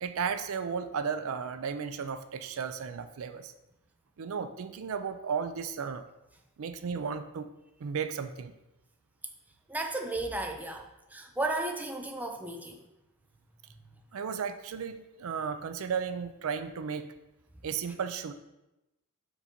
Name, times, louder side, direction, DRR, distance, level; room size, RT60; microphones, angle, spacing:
voice 1, 0.0-3.5 4.2-6.0 6.6-7.5 7.8-8.5 14.1-17.1 17.6-18.3, right 6 dB, 70° right, 10 dB, 0.4 m, -34 dB
voice 2, 9.7-12.9, right 2 dB, 5° right, 4 dB, 0.4 m, -34 dB
5.0 x 4.0 x 5.1 m, 0.94 s
head